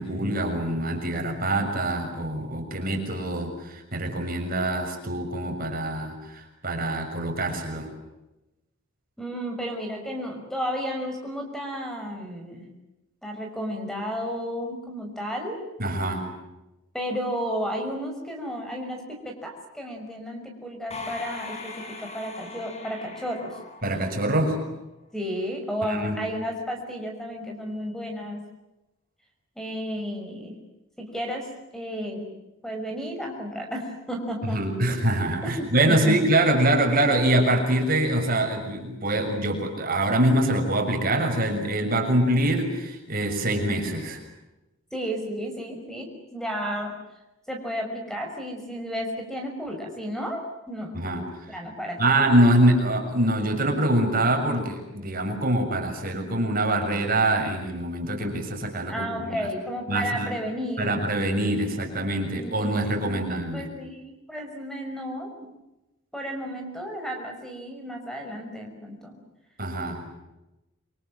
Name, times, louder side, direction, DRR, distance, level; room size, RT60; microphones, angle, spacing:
voice 1, 0.0-7.9 15.8-16.3 23.8-24.6 25.9-26.2 34.4-44.2 50.9-51.2 52.0-59.4 59.9-60.3 60.8-63.7 69.6-70.0, right 1 dB, 40° right, 4 dB, 6.6 m, -24 dB
voice 2, 9.2-12.7 13.2-15.6 16.9-23.6 25.1-28.5 29.6-30.5 31.0-32.3 32.6-34.8 35.4-36.2 44.9-47.0 47.5-51.0 51.5-52.0 54.4-54.7 58.9-61.0 62.3-65.5 66.1-69.2, equal, ahead, 2 dB, 5.7 m, -33 dB
sound 1, 20.9-24.6, left 3 dB, 30° left, 5.9 m, -40 dB
28.0 x 26.0 x 7.7 m, 0.98 s
head